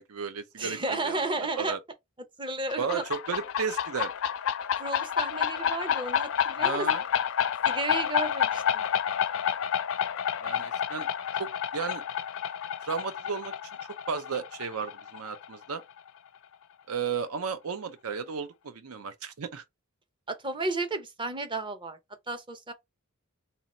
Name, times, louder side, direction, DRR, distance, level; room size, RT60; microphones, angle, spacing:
voice 1, 0.0-1.2 1.6-1.8 2.8-4.1 6.6-7.0 10.4-11.1 11.4-12.0 12.8-13.5 14.1-15.8 16.9-19.6, right 6 dB, 80° right, 0.6 m, -34 dB
voice 2, 0.6-1.8 2.4-3.0 4.8-6.9 7.6-8.8 20.3-22.0 22.3-22.7, right 2 dB, 20° right, 0.6 m, -33 dB
sound 1, 2.7-16.1, left 8 dB, 65° left, 0.4 m, -29 dB
2.9 x 2.8 x 4.1 m
head